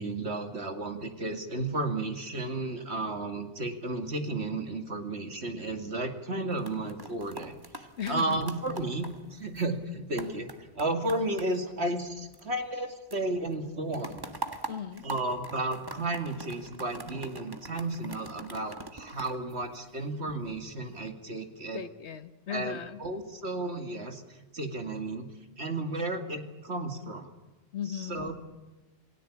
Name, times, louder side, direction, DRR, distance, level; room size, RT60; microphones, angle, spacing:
voice 1, 0.0-9.1 9.3-14.3 15.0-21.8 22.5-25.3 25.6-27.3 27.9-28.3, right 2 dB, 60° right, 6 dB, 2.7 m, -33 dB
sound 1, 6.3-12.8 13.1-20.3 20.8-21.1, right 2 dB, 20° right, 1.6 m, -44 dB
voice 2, 8.0-8.4 14.7-15.1 21.7-23.0 27.7-28.3, left 8 dB, 65° left, 12 dB, 1.4 m, -37 dB
28.0 x 17.5 x 8.6 m, 1.1 s
omnidirectional pair, 1.2 m